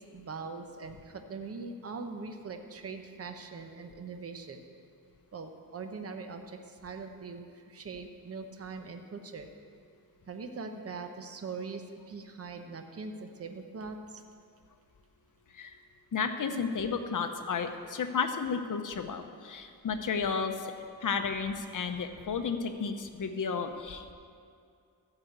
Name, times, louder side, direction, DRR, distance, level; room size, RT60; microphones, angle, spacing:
voice 1, 0.1-4.6 5.3-9.5 10.3-14.2, right 4 dB, 40° right, 6 dB, 0.8 m, -42 dB
voice 2, 16.1-20.7 21.0-24.1, left 5 dB, 55° left, 6 dB, 0.8 m, -32 dB
13.0 x 5.0 x 8.0 m, 2.3 s
wide cardioid pair, 135°, 36 cm